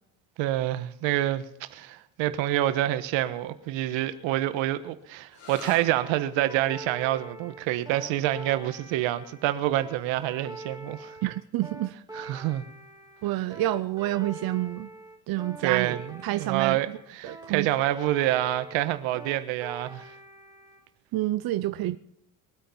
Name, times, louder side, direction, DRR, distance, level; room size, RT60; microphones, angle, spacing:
voice 1, 0.4-11.2 12.1-12.6 13.3-13.4 15.6-20.1, right 14 dB, 75° right, 1.4 m, -27 dB
sound 1, 5.3-12.7, left 2 dB, 60° left, 6.0 m, -52 dB
sound 2, 6.0-20.8, right 2 dB, 10° right, 2.7 m, -44 dB
voice 2, 11.2-11.9 13.2-14.9 15.3-16.8 17.2-17.7 21.1-22.0, right 15 dB, 50° right, 0.7 m, -28 dB
22.5 x 8.7 x 5.5 m
supercardioid pair, 95°, 46 cm